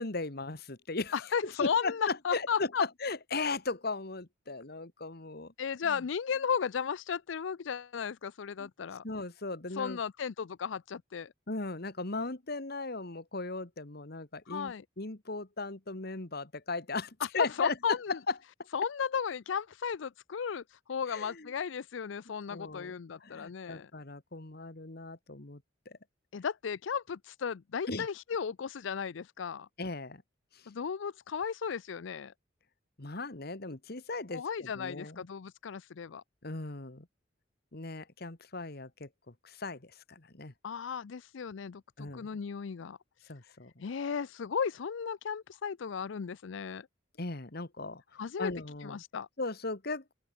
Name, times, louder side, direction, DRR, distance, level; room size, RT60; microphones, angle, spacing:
voice 1, 0.0-1.2 1.4-5.5 5.9-6.0 8.6-8.7 9.0-10.0 11.5-17.8 18.3-18.4 21.1-21.5 22.5-23.0 23.2-26.0 27.9-28.1 29.8-30.2 30.5-30.6 33.0-35.3 36.4-37.1 37.7-40.5 42.0-42.3 43.3-43.8 47.2-48.0 48.4-49.0 49.4-50.1, left 3 dB, 55° left, 1.8 m, -37 dB
voice 2, 1.1-2.8 5.6-9.0 9.7-11.3 14.5-14.8 17.2-18.2 18.7-23.9 26.3-29.7 30.7-32.3 34.3-36.2 40.6-43.0 43.8-46.9 48.1-48.5 48.8-49.3, left 6 dB, 75° left, 0.5 m, -35 dB
open air
head